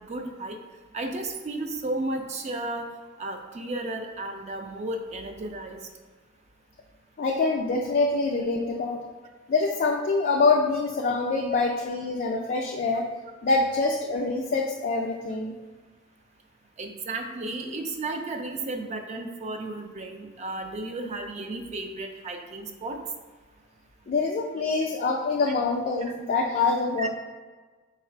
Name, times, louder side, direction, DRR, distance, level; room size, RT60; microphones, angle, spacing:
voice 1, 0.1-0.6 0.9-2.9 3.2-5.8 16.8-23.0 27.0-27.1, right 2 dB, 35° right, 4 dB, 0.4 m, -33 dB
voice 2, 7.2-9.0 9.5-13.1 13.4-15.6 24.1-27.1, left 3 dB, 45° left, 0 dB, 0.3 m, -25 dB
3.8 x 2.4 x 4.3 m, 1.4 s
head